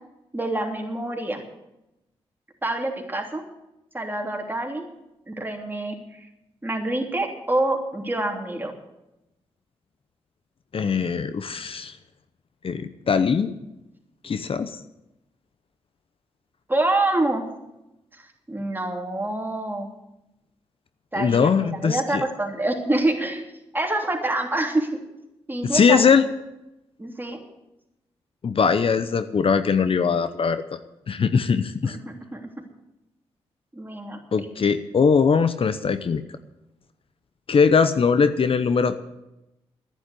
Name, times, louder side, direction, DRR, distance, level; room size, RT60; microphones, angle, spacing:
voice 1, 0.3-1.4 2.6-3.4 3.9-4.8 5.3-6.3 6.6-8.7 16.7-17.4 18.2-19.9 21.1-23.4 23.7-25.0 25.5-26.1 27.0-27.4 31.8-32.4 33.7-34.2, right 2 dB, 15° right, 2 dB, 3.2 m, -26 dB
voice 2, 10.7-11.9 12.6-13.5 14.2-14.8 21.1-22.2 25.6-26.3 28.4-30.8 31.1-32.0 34.3-36.2 37.5-39.0, left 5 dB, 55° left, 11 dB, 0.8 m, -21 dB
10.5 x 10.0 x 8.4 m, 0.91 s
supercardioid pair, 50°, 12 cm